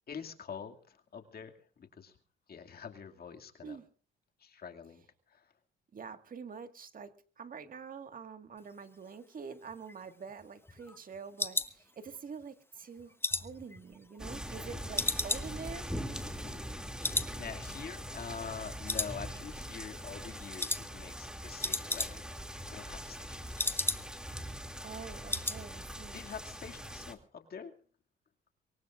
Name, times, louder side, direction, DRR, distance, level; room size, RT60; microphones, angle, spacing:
voice 1, 0.1-2.2 2.5-3.8 4.4-5.0 5.3-5.5 16.4-16.7 17.4-22.2 22.5-23.6 26.1-27.7, left 6 dB, 50° left, 4 dB, 2.4 m, -45 dB
voice 2, 5.9-15.9 24.8-26.2, right 6 dB, 45° right, 9 dB, 1.8 m, -46 dB
sound 1, 9.7-12.4 12.8-14.6 15.0-16.8 17.0-17.4 17.6-17.7 18.2-18.6 18.9-19.7 19.9-20.2 20.6-20.9 21.2-21.3 21.5-22.4 22.7-24.3 24.6-24.7 25.0-25.6 25.9-26.2 26.5-26.6, left 2 dB, 10° left, 1.1 m, -35 dB
sound 2, 14.2-27.1, equal, 5° right, 2.6 m, -42 dB
23.5 x 23.0 x 2.5 m, 0.43 s
cardioid pair, 90°, 20 cm